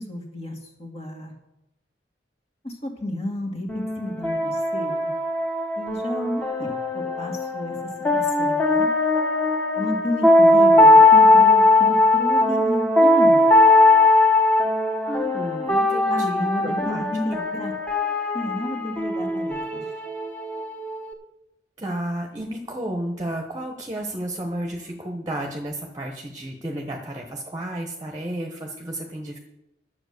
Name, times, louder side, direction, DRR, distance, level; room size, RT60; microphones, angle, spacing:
voice 1, 0.0-1.3 2.6-5.1 5.8-7.8 8.1-8.9 9.8-13.5 16.1-17.7 18.3-19.8, left 1 dB, 35° left, 2 dB, 2.2 m, -31 dB
sound 1, 3.7-21.1, left 2 dB, 10° left, 1.4 m, -19 dB
voice 2, 15.1-17.3 21.8-29.4, right 1 dB, 20° right, 3 dB, 1.1 m, -32 dB
10.5 x 7.5 x 6.6 m, 0.89 s
head